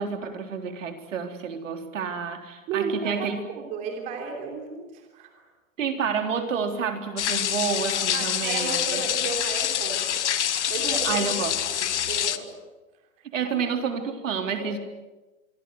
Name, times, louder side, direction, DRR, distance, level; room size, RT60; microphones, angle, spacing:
voice 1, 0.0-3.4 5.8-9.0 11.0-11.5 13.3-14.8, right 6 dB, 65° right, 5 dB, 3.9 m, -29 dB
voice 2, 2.7-3.2 3.5-5.4 8.1-11.3 11.7-12.5 14.6-14.7, right 5 dB, 20° right, 2 dB, 3.3 m, -34 dB
sound 1, 7.2-12.4, left 10 dB, 60° left, 1.5 m, -26 dB
25.5 x 24.0 x 7.9 m, 1.1 s
hypercardioid pair, 175°, 40 cm